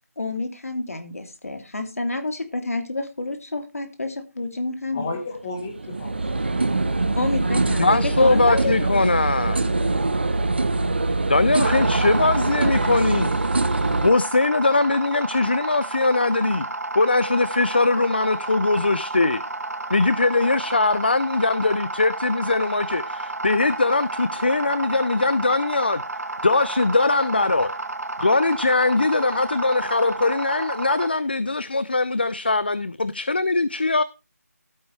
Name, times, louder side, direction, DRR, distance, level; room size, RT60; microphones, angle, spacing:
voice 1, 0.2-5.0 7.1-9.3 9.6-9.9, left 2 dB, 60° left, 2.6 m, -29 dB
voice 2, 4.9-6.6 7.0-7.1, left 3 dB, 15° left, 1.3 m, -33 dB
sound 1, 5.3-14.1, right 2 dB, 40° right, 0.9 m, -23 dB
voice 3, 7.8-9.6 11.3-13.3 14.0-16.7 16.9-19.4 19.9-26.0 26.4-27.7 28.2-34.0, left 3 dB, 35° left, 0.4 m, -21 dB
sound 2, 11.6-31.1, right 2 dB, 70° right, 1.4 m, -31 dB
14.0 x 8.9 x 3.3 m
figure-of-eight pair, 175°, 9 cm